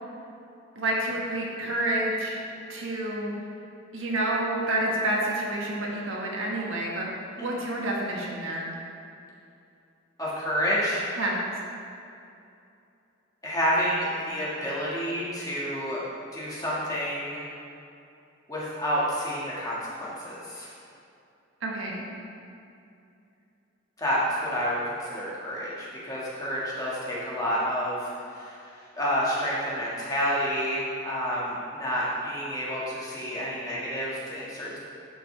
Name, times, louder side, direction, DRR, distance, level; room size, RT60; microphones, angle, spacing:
voice 1, 0.7-2.4 2.7-3.3 3.9-7.1 7.4-8.7 11.2-11.4 21.6-22.0, right 1 dB, 75° right, -3 dB, 1.4 m, -29 dB
voice 2, 10.2-11.1 13.4-16.0 16.3-17.5 18.5-20.7 24.0-28.6 28.9-34.8, equal, 15° left, -7 dB, 1.6 m, -29 dB
11.5 x 5.4 x 3.3 m, 2.6 s
head